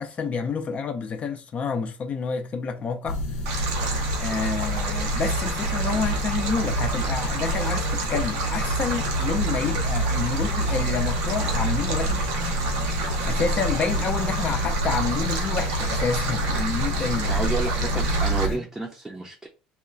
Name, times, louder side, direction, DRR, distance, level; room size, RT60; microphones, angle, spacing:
voice 1, 0.0-3.2 4.2-12.4 13.2-17.4 18.5-18.6, left 5 dB, 40° left, 0.5 m, -29 dB
Sand clock, 3.1-18.6, right 1 dB, 80° left, 0.7 m, -27 dB
Stream, 3.5-18.5, right 3 dB, 75° right, 0.6 m, -31 dB
voice 2, 17.2-19.5, right 2 dB, 10° right, 0.6 m, -31 dB
2.2 x 2.1 x 3.7 m
hypercardioid pair, 70°, 3 cm